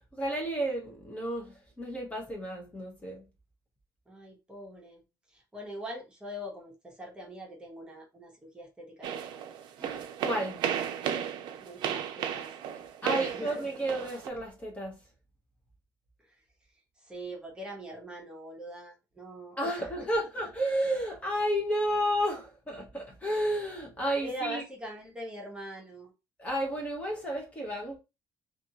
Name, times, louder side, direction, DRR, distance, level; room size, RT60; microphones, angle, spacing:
voice 1, 0.1-3.2 9.8-10.6 13.0-15.0 19.6-24.6 26.4-28.0, equal, 20° left, 0.8 m, -32 dB
voice 2, 4.1-9.4 11.6-12.5 13.1-13.9 16.2-16.4 17.0-20.3 24.2-26.1, equal, 10° right, 0.9 m, -43 dB
sound 1, 9.0-14.3, right 9 dB, 75° right, 0.4 m, -34 dB
2.5 x 2.5 x 2.7 m
cardioid pair, 140°, 8 cm